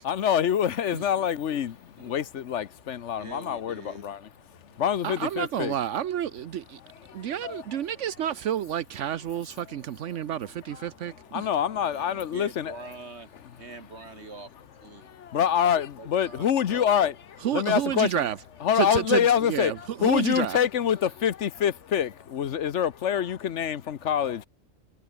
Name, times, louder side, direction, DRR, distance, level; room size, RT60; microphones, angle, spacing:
voice 1, 0.0-4.3 4.8-5.7 7.1-7.8 10.7-10.9 11.3-12.7 15.0-17.1 17.5-18.1 18.6-24.5, left 9 dB, 75° left, 1.2 m, -26 dB
voice 2, 3.2-4.1 11.7-13.3 13.6-15.1 16.0-17.2 24.2-24.4, right 3 dB, 65° right, 3.5 m, -44 dB
voice 3, 5.0-6.8 7.1-11.5 17.4-18.4 18.7-20.6, right 10 dB, 80° right, 1.1 m, -30 dB
omnidirectional pair, 1.2 m